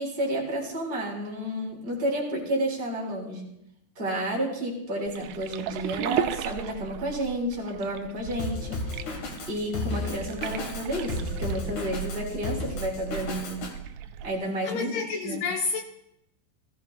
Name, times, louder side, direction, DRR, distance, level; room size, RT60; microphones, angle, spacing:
voice 1, 0.0-3.5 3.9-8.8 9.4-13.6 14.2-14.9 15.2-15.4, right 1 dB, 15° right, -3 dB, 2.9 m, -31 dB
sound 1, 5.1-14.3, right 9 dB, 85° right, 2.5 m, -36 dB
Drum kit, 8.4-13.7, left 3 dB, 55° left, 2.6 m, -34 dB
voice 2, 14.6-15.8, left 4 dB, 75° left, 3 dB, 2.5 m, -29 dB
17.5 x 16.0 x 2.3 m, 0.79 s
omnidirectional pair, 5.4 m